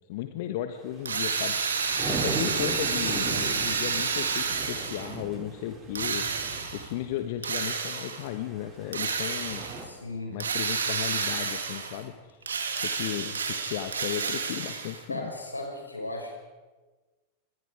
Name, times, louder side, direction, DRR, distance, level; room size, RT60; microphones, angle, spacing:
voice 1, 0.1-1.6 2.1-6.2 6.7-9.6 10.3-15.3, left 12 dB, 50° left, 8 dB, 1.4 m, -35 dB
sound 1, 0.9-7.2 8.2-9.8, right 3 dB, 25° right, 6.0 m, -38 dB
Drill, 1.1-5.2 5.9-6.9 7.4-8.3 8.9-9.8 10.4-12.0 12.4-15.0, right 5 dB, 70° right, 3.1 m, -30 dB
voice 2, 9.8-10.4 15.1-16.3, left 1 dB, 85° left, 1 dB, 6.0 m, -36 dB
29.5 x 22.5 x 4.9 m, 1.3 s
figure-of-eight pair, 90°, 0 cm